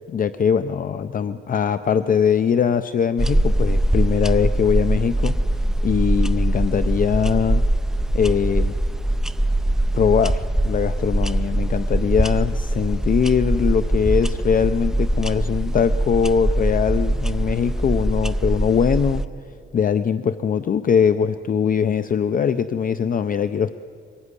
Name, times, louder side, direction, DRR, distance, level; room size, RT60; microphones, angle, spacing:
voice 1, 0.1-5.4 5.8-7.6 8.1-8.7 9.9-19.2 19.7-23.7, left 7 dB, 40° left, 11 dB, 0.5 m, -21 dB
sound 1, 3.2-19.2, right 1 dB, 5° right, 0.5 m, -22 dB
23.5 x 18.5 x 9.8 m, 2.5 s
wide cardioid pair, 160°, 21 cm